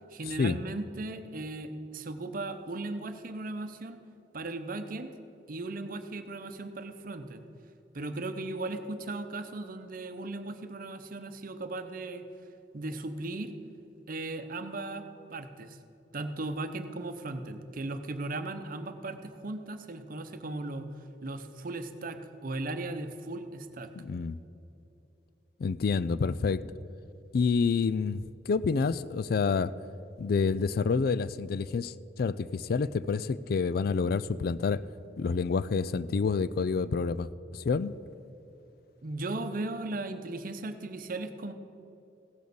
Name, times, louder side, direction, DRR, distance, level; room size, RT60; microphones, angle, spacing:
voice 1, 0.1-4.0 4.3-5.1 5.5-7.4 7.9-12.3 12.7-13.5 14.1-15.8 16.1-20.9 21.2-23.9 39.0-41.5, right 2 dB, 50° right, 9 dB, 0.8 m, -37 dB
voice 2, 24.0-24.4 25.6-26.7 27.3-29.7 30.2-34.8 35.2-37.9, left 5 dB, 55° left, 17 dB, 0.4 m, -28 dB
16.0 x 6.3 x 6.9 m, 2.8 s
head